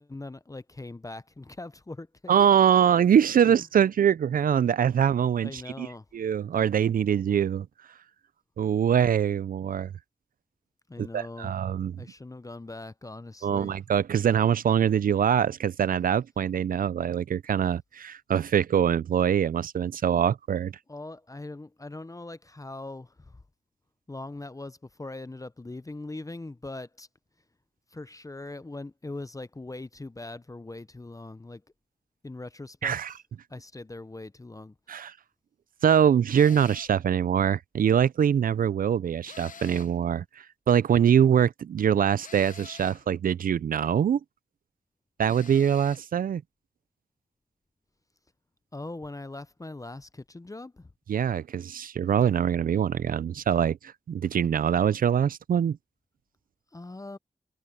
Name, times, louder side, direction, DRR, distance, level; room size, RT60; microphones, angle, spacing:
voice 1, 0.0-2.3 3.4-3.6 5.4-6.0 10.9-11.5 12.0-13.7 20.9-23.4 24.1-27.1 27.9-31.6 32.2-32.9 33.5-34.7 48.7-50.9 56.7-57.2, left 2 dB, 25° left, 0.6 m, -41 dB
voice 2, 2.3-5.9 6.1-7.7 8.6-9.9 11.0-12.0 13.4-20.7 32.8-33.1 34.9-35.1 35.8-40.2 40.7-44.2 45.2-46.4 51.1-55.8, right 8 dB, 85° right, 0.4 m, -23 dB
sound 1, 36.3-37.0 39.2-40.0 42.2-43.1 45.3-46.1, left 6 dB, 70° left, 0.7 m, -47 dB
open air
cardioid pair, 55°, 14 cm